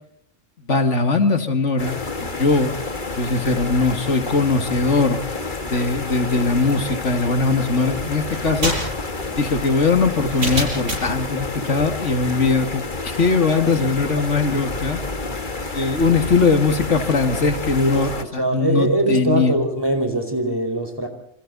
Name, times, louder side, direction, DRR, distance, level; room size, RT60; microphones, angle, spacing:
voice 1, 0.7-2.8 3.1-5.2 5.7-8.7 9.3-15.0 15.7-19.5, left 4 dB, 85° left, 7 dB, 2.5 m, -20 dB
sound 1, 1.8-18.2, left 3 dB, 45° left, 2.0 m, -29 dB
sound 2, 8.3-11.2, right 1 dB, 90° right, 6.7 m, -27 dB
voice 2, 17.8-21.1, right 1 dB, 20° right, 5 dB, 5.0 m, -22 dB
28.0 x 27.0 x 4.1 m, 0.72 s
omnidirectional pair, 1.2 m